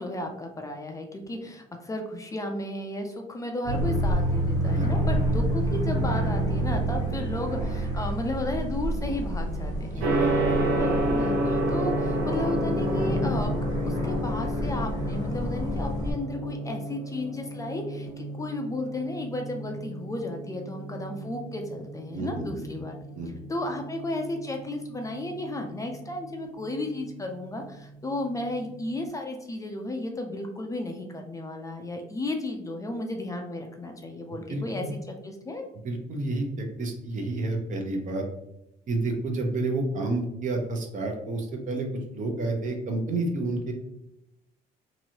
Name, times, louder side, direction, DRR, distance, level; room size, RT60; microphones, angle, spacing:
voice 1, 0.0-10.1 10.8-13.5 13.8-23.0 23.5-35.7, left 1 dB, 20° left, 3 dB, 0.4 m, -33 dB
sound 1, 3.6-16.1, equal, 25° right, 1.1 m, -28 dB
voice 2, 9.9-10.3 22.1-22.6 23.1-23.4 34.5-34.9 35.8-38.2 38.9-43.7, right 2 dB, 50° right, 2 dB, 0.7 m, -30 dB
Gong, 10.0-29.0, right 1 dB, 75° right, 0.9 m, -32 dB
3.0 x 2.6 x 2.8 m, 0.85 s
cardioid pair, 110°, 17 cm